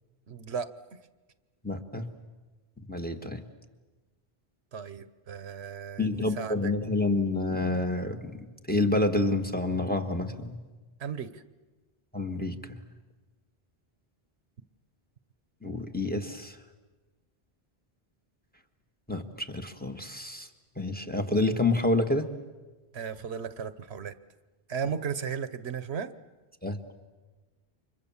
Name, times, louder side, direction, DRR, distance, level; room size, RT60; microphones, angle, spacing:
voice 1, 0.3-0.7 4.7-6.7 11.0-11.4 22.9-24.1 24.7-26.1, right 7 dB, 85° right, 13 dB, 1.3 m, -35 dB
voice 2, 1.6-2.1 2.8-3.4 6.0-10.6 12.1-12.5 15.6-16.6 19.1-20.5 20.8-22.3 26.6-26.8, left 2 dB, 10° left, 6 dB, 1.5 m, -28 dB
29.5 x 25.5 x 7.2 m, 1.2 s
omnidirectional pair, 1.1 m